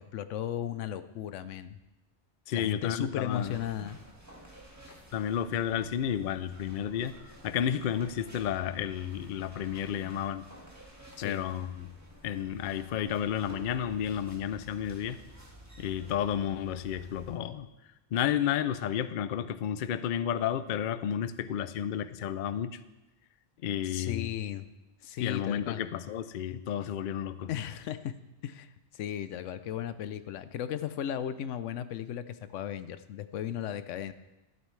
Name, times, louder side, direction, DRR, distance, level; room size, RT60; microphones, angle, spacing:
voice 1, 0.0-1.8 2.5-4.0 11.2-11.4 23.8-24.7 25.0-25.8 27.5-28.1 28.4-34.1, left 10 dB, 85° left, 13 dB, 0.9 m, -36 dB
voice 2, 2.5-3.6 5.1-10.4 11.2-11.9 12.2-15.2 15.8-17.7 18.1-22.8 23.6-24.3 25.2-27.5, left 9 dB, 60° left, 13 dB, 0.5 m, -32 dB
sound 1, 3.3-17.4, right 1 dB, 15° right, 1.6 m, -52 dB
12.5 x 11.0 x 3.2 m, 1.0 s
omnidirectional pair, 1.2 m